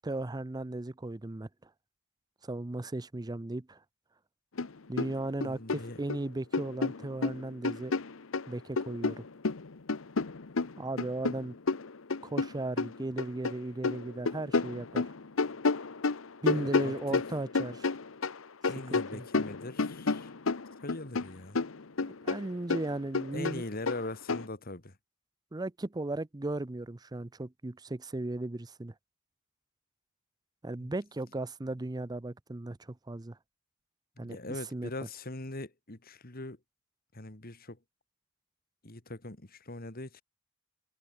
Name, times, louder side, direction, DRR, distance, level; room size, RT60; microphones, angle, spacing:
voice 1, 0.0-1.7 2.4-3.8 4.9-7.9 8.5-9.2 10.8-11.6 12.2-15.1 16.4-17.9 18.9-19.2 22.0-23.6 25.5-28.9 30.6-33.4 34.2-34.4 34.7-34.9, right 2 dB, 20° right, 0.6 m, -36 dB
sound 1, 4.6-4.7 5.0-6.2 6.5-8.5 8.8-13.5 13.8-18.4 18.6-21.3 21.6-24.5, left 3 dB, 75° left, 0.9 m, -31 dB
voice 2, 5.4-6.0 16.5-17.2 18.7-20.3 20.8-21.6 23.3-25.0 30.8-30.9 34.2-36.6 37.1-37.8 38.8-40.2, left 2 dB, 45° left, 2.6 m, -41 dB
head